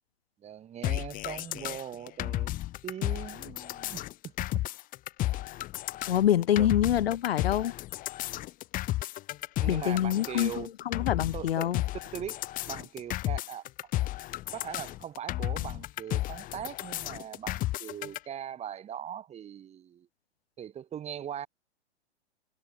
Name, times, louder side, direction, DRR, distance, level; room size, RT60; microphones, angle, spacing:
voice 1, 0.4-4.6 6.6-6.7 9.6-10.7 11.3-12.4 12.7-13.6 14.5-20.1 20.6-21.5, right 9 dB, 20° right, 2.4 m, -40 dB
sound 1, 0.8-18.2, left 16 dB, 25° left, 1.2 m, -33 dB
voice 2, 6.1-7.7 9.7-11.8, left 11 dB, 60° left, 1.6 m, -26 dB
figure-of-eight pair, 115°, 34 cm